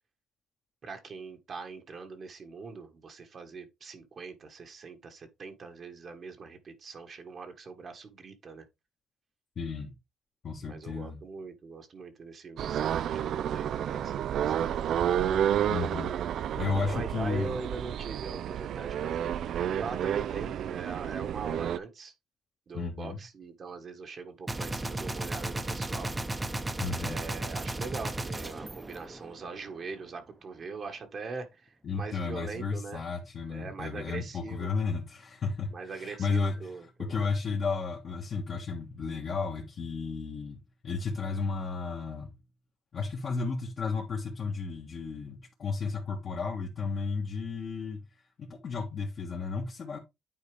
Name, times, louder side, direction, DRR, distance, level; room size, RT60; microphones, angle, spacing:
voice 1, 0.8-8.6 10.7-15.0 16.8-22.1 22.7-26.1 27.0-33.0 33.5-34.7 35.7-37.3, right 4 dB, 50° right, 1.4 m, -42 dB
voice 2, 9.6-9.9 10.4-11.2 15.7-16.1 16.6-17.5 22.7-23.2 26.8-27.2 31.8-36.7 37.0-40.6 40.8-42.3 42.9-48.0 48.4-50.0, left 4 dB, 50° left, 1.4 m, -33 dB
sound 1, 12.6-21.8, right 10 dB, 70° right, 0.4 m, -30 dB
Gunshot gunfire, 24.5-29.7, right 2 dB, 20° right, 0.9 m, -35 dB
9.4 x 4.0 x 3.3 m
cardioid pair, 90°, 0 cm